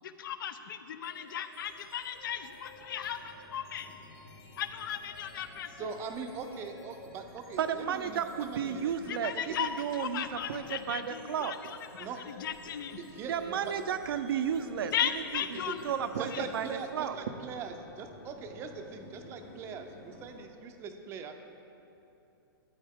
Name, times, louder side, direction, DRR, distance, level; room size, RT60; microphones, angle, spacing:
voice 1, 0.2-4.0 4.6-5.7 9.1-13.0 14.9-15.8 16.3-16.5, left 9 dB, 60° left, 11 dB, 0.6 m, -36 dB
sound 1, 1.0-17.7, left 2 dB, 85° left, 2.1 m, -54 dB
sound 2, 1.5-20.5, left 2 dB, 40° left, 1.3 m, -55 dB
voice 2, 5.8-9.6 12.0-12.2 13.0-13.8 15.5-15.8 16.2-21.3, right 5 dB, 20° right, 6 dB, 0.6 m, -41 dB
voice 3, 7.6-11.5 13.3-14.9 15.5-16.7 16.9-17.2, right 8 dB, 65° right, 10 dB, 0.6 m, -33 dB
12.5 x 9.6 x 3.6 m, 2.9 s
hypercardioid pair, 155°, 13 cm